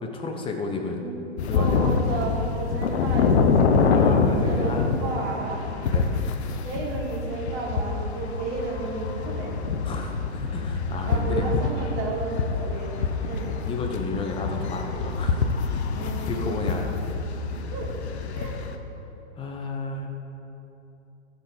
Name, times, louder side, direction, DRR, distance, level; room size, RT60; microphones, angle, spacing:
voice 1, 0.0-1.0 1.5-1.8 3.9-5.0 5.8-6.1 9.8-11.5 13.6-15.9 16.2-17.0 19.4-20.1, left 3 dB, 15° left, 3 dB, 1.1 m, -32 dB
voice 2, 0.8-4.0 4.3-5.6 6.6-9.6 11.1-13.5 15.9-16.8 17.7-17.9 18.3-18.6, right 3 dB, 35° right, -3 dB, 2.8 m, -33 dB
sound 1, 1.4-18.8, left 5 dB, 70° left, 1.1 m, -26 dB
14.0 x 5.5 x 6.9 m, 3.0 s
hypercardioid pair, 130°, 35 cm